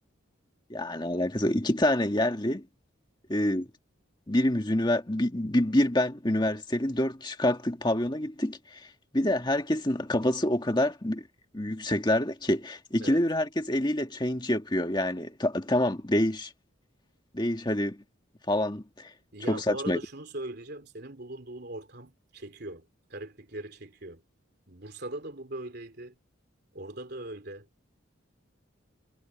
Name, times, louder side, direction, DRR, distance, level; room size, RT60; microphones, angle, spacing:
voice 1, 0.7-2.6 3.3-3.7 4.3-8.8 9.1-11.2 11.5-16.5 17.3-18.0 18.5-19.1 19.5-20.0, left 1 dB, 20° left, 1.9 m, -27 dB
voice 2, 19.3-24.2 24.7-26.2 26.7-27.7, right 1 dB, 50° right, 3.3 m, -40 dB
head